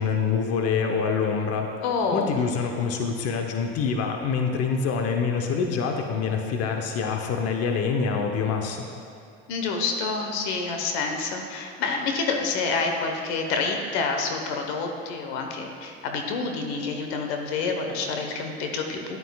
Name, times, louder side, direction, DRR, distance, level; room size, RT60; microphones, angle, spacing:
voice 1, 0.0-1.7 2.1-8.9, left 5 dB, 50° left, 3 dB, 0.9 m, -26 dB
voice 2, 1.8-2.3 9.5-19.2, left 4 dB, 85° left, 3 dB, 1.1 m, -28 dB
11.0 x 9.2 x 2.3 m, 2.5 s
supercardioid pair, 95°, 32 cm